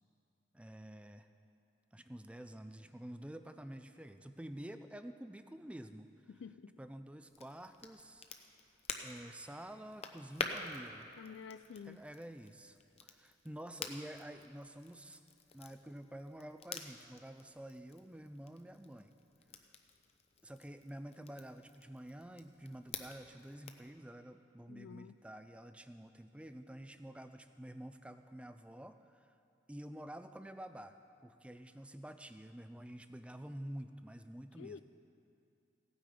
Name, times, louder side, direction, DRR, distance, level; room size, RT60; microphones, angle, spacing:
voice 1, 0.5-1.3 1.9-6.1 6.8-8.3 9.0-11.1 11.8-15.2 15.5-19.1 20.4-29.3 29.7-31.0 31.2-34.8, right 1 dB, 5° right, 9 dB, 0.4 m, -49 dB
voice 2, 6.3-6.7 11.2-12.0 24.7-25.1 34.6-34.8, left 6 dB, 80° left, 15 dB, 0.3 m, -49 dB
Crackle, 7.2-23.9, left 5 dB, 35° left, 0.6 m, -49 dB
16.5 x 9.0 x 5.0 m, 2.6 s
head